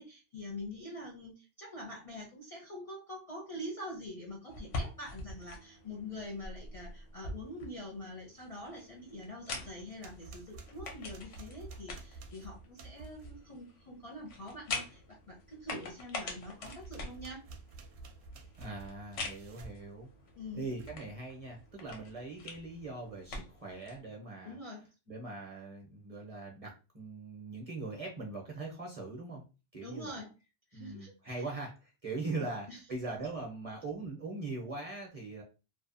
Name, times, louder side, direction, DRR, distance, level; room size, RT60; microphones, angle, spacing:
voice 1, 0.0-17.4 20.3-20.6 24.4-24.8 29.8-30.3 30.7-31.4 32.4-32.8, left 1 dB, 45° left, -1 dB, 0.5 m, -45 dB
sound 1, 4.5-24.0, left 3 dB, 85° left, 1.0 m, -45 dB
sound 2, 9.6-13.5 16.6-19.8 20.5-21.1, right 3 dB, 70° right, 0.8 m, -51 dB
voice 2, 18.6-20.1 20.5-24.6 25.1-29.4 29.7-30.2 30.7-35.4, right 3 dB, 40° right, 0 dB, 0.6 m, -41 dB
2.6 x 2.2 x 2.5 m, 0.30 s
omnidirectional pair, 1.2 m